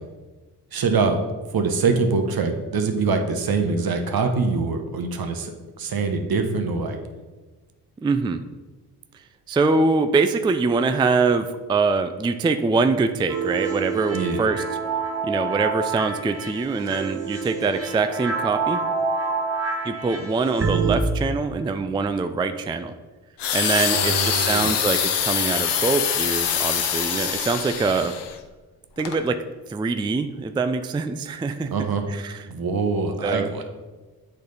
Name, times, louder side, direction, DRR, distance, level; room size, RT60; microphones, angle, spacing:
voice 1, 0.7-1.2 1.5-5.5 5.8-7.0 14.1-14.4 23.9-24.8 31.7-32.0 32.4-33.6, right 4 dB, 60° right, 6 dB, 0.9 m, -24 dB
voice 2, 8.0-8.4 9.5-14.6 15.2-18.8 19.8-22.9 23.5-28.2 29.0-31.7 32.1-32.4 33.2-33.6, right 4 dB, 15° right, 9 dB, 0.3 m, -24 dB
sound 1, 13.3-21.0, right 5 dB, 35° right, 1.0 m, -27 dB
sound 2, 23.4-28.3 29.0-29.2, left 8 dB, 80° left, 0.7 m, -24 dB
8.3 x 3.3 x 4.0 m, 1.3 s
cardioid pair, 60°, 41 cm